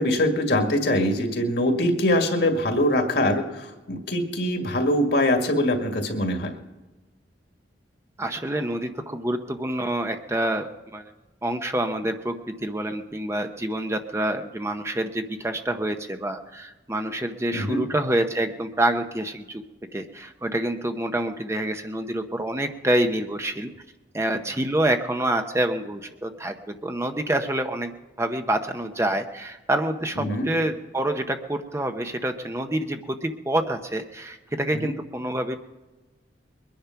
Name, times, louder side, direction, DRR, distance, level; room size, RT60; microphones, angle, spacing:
voice 1, 0.0-6.5 17.5-17.8 30.2-30.5 34.7-35.0, left 1 dB, 60° left, 5 dB, 2.0 m, -23 dB
voice 2, 8.2-10.7 10.9-11.1 11.4-19.6 19.9-23.7 24.1-27.9 28.2-35.6, right 1 dB, 15° right, 6 dB, 0.7 m, -27 dB
22.0 x 10.5 x 5.8 m, 1.2 s
head